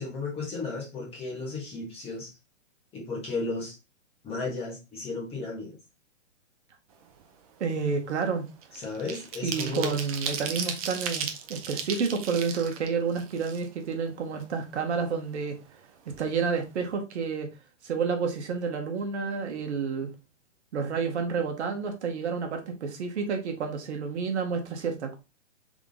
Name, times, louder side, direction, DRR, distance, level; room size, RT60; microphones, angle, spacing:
voice 1, 0.0-2.3 2.9-3.7 4.2-5.7 8.7-10.0, left 3 dB, 15° left, 1.5 m, -34 dB
sound 1, 7.0-7.3 7.6-14.0 14.4-14.5 14.8-15.8 16.1-16.2 16.5-16.8, right 7 dB, 30° right, 0.6 m, -36 dB
voice 2, 7.6-8.4 9.4-15.6 16.2-17.5 17.8-20.1 20.7-25.2, right 5 dB, 60° right, 1.2 m, -30 dB
3.6 x 3.6 x 3.7 m
hypercardioid pair, 150°, 37 cm